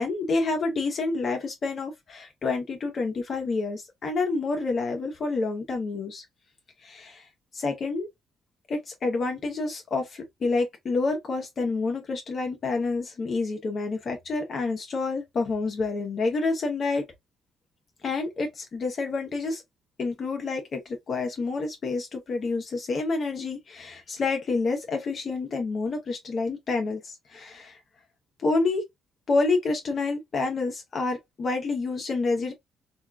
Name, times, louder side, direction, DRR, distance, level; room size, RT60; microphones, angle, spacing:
voice 1, 0.0-6.2 6.8-7.3 7.5-8.1 8.7-17.0 18.0-19.6 20.0-27.8 28.4-28.8 29.3-32.5, left 3 dB, 50° left, 0.8 m, -28 dB
3.6 x 2.3 x 2.3 m
cardioid pair, 90°, 0 cm